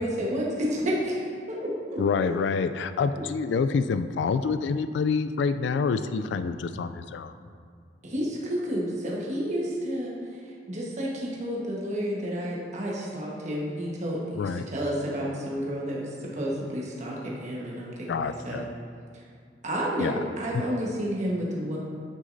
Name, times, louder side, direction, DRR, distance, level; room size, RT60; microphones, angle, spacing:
voice 1, 0.0-2.0 8.0-10.1 10.7-18.6 19.6-21.8, equal, 40° right, -4 dB, 1.3 m, -30 dB
voice 2, 2.0-7.3 14.4-14.6 18.1-18.7 20.0-20.2 20.5-20.6, left 5 dB, 75° left, 11 dB, 0.3 m, -27 dB
9.6 x 6.2 x 2.6 m, 2.1 s
head